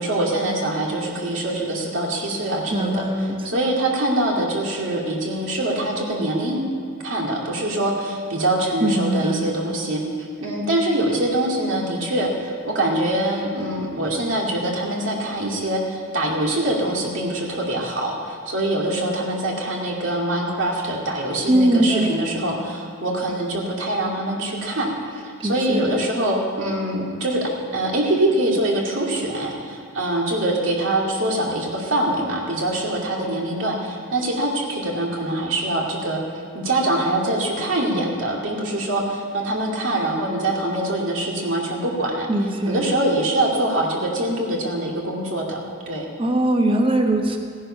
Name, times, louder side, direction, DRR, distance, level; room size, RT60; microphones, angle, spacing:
voice 1, 0.0-6.6 7.0-10.0 10.4-36.2 36.5-42.3 42.7-45.6 45.9-46.1, right 1 dB, 65° right, -2 dB, 2.4 m, -24 dB
voice 2, 2.7-3.5 8.8-9.4 21.5-22.2 25.4-25.9 42.3-42.9 46.2-47.4, right 1 dB, 25° right, 3 dB, 1.0 m, -21 dB
16.5 x 10.0 x 5.6 m, 2.1 s
head